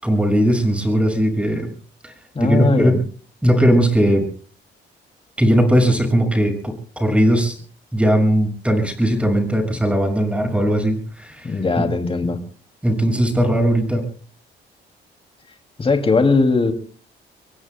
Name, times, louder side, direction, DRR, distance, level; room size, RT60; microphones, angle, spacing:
voice 1, 0.0-1.7 2.0-2.1 2.4-3.0 3.4-4.2 5.4-7.6 7.9-11.9 12.8-14.0, equal, 5° right, 4 dB, 6.3 m, -18 dB
voice 2, 2.3-3.0 11.4-12.4 15.8-16.7, left 3 dB, 30° left, 5 dB, 2.6 m, -19 dB
27.0 x 22.0 x 2.2 m, 0.41 s
cardioid pair, 90°, 20 cm